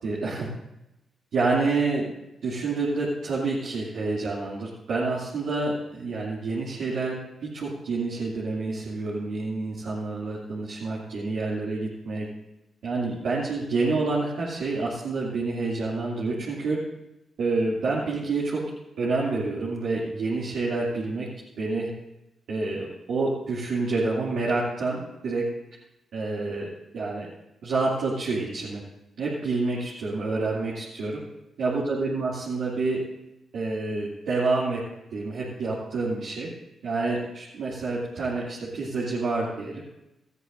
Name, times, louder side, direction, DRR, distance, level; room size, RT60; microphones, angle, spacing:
voice 1, 0.0-0.5 1.3-2.0 2.4-12.3 12.8-16.8 17.4-18.6 19.0-21.3 21.6-21.9 22.5-25.0 25.2-25.4 26.1-27.3 27.6-28.8 29.2-31.2 31.6-33.0 33.5-34.8 35.1-36.5 36.8-39.8, right 3 dB, 70° right, -7 dB, 2.5 m, -28 dB
18.0 x 13.5 x 2.6 m, 0.91 s
hypercardioid pair, 45°, 0 cm